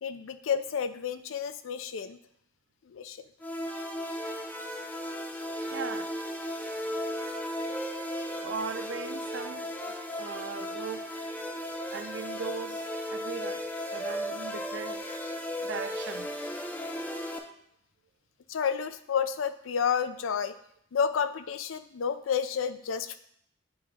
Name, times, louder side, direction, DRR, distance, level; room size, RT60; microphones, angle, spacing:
voice 1, 0.0-2.2 2.9-3.2 15.5-15.6 18.5-20.6 20.9-23.2, left 7 dB, 80° left, 0.4 m, -30 dB
sound 1, 3.4-17.4, equal, 10° left, 0.4 m, -35 dB
voice 2, 5.5-6.2 8.3-9.7 10.2-11.3 11.9-15.1 15.6-16.3, right 6 dB, 60° right, 0.4 m, -39 dB
7.7 x 2.9 x 4.8 m
head